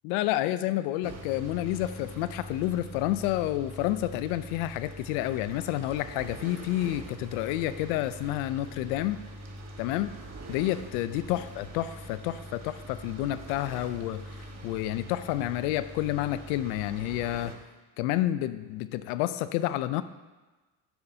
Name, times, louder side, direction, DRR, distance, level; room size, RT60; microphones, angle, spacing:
voice 1, 0.0-9.2 9.8-10.1 10.5-14.2 14.6-17.5 18.0-20.0, left 14 dB, 85° left, 14 dB, 0.5 m, -29 dB
sound 1, 1.0-17.5, right 1 dB, 35° right, 1.3 m, -43 dB
12.5 x 6.7 x 2.7 m, 1.2 s
supercardioid pair, 80°, 44 cm